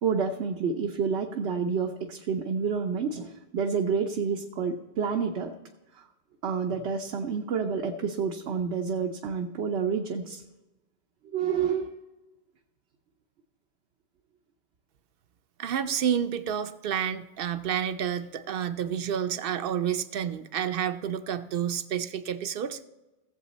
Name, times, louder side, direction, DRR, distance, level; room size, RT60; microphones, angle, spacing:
voice 1, 0.0-5.5 5.9-6.1 6.4-10.4 11.2-12.0, right 6 dB, 80° right, 2 dB, 1.1 m, -29 dB
voice 2, 15.6-22.8, right 9 dB, 60° right, 11 dB, 0.8 m, -29 dB
16.5 x 7.5 x 4.1 m, 1.1 s
omnidirectional pair, 1.1 m